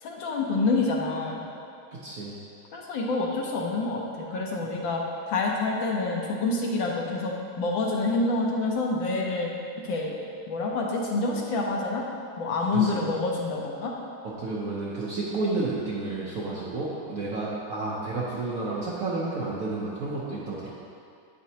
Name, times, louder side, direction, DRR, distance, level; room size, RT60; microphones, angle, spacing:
voice 1, 0.0-1.4 2.7-4.0 4.3-5.0 5.3-9.5 9.8-10.1 10.5-12.0 12.4-13.9, left 3 dB, 75° left, -1 dB, 1.5 m, -27 dB
voice 2, 2.0-2.4 12.7-13.1 14.2-20.7, right 3 dB, 60° right, -6 dB, 0.9 m, -31 dB
8.7 x 5.2 x 2.8 m, 2.4 s
omnidirectional pair, 2.2 m